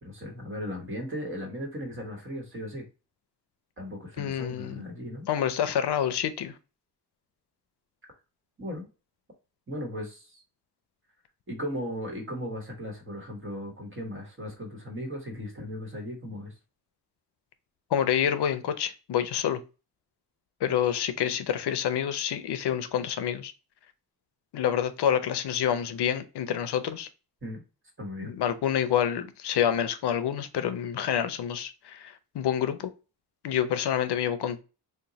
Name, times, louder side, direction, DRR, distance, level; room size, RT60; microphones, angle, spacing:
voice 1, 0.0-2.9 3.8-5.3 8.6-8.9 9.7-10.4 11.5-16.5 27.4-27.6 28.0-28.4, equal, 30° right, 1.1 m, -37 dB
voice 2, 4.2-4.8 5.3-6.5 17.9-19.6 20.6-23.5 24.5-27.1 28.2-32.9 33.4-34.6, left 9 dB, 85° left, 0.5 m, -27 dB
2.9 x 2.2 x 3.9 m
wide cardioid pair, 150°, 39 cm